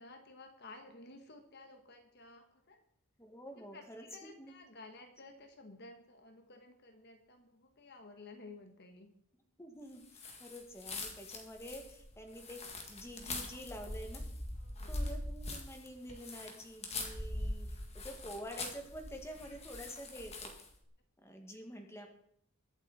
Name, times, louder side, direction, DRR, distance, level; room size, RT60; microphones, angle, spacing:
voice 1, 0.0-2.8 3.5-9.1 14.5-15.1, left 2 dB, 45° left, 5 dB, 1.3 m, -54 dB
voice 2, 3.2-4.0 4.4-4.5 9.6-12.6 12.9-14.3 14.9-20.5 21.2-22.1, equal, 10° left, 3 dB, 1.8 m, -48 dB
sound 1, 10.1-20.7, left 2 dB, 30° left, 2.0 m, -43 dB
22.0 x 8.2 x 4.2 m, 0.69 s
head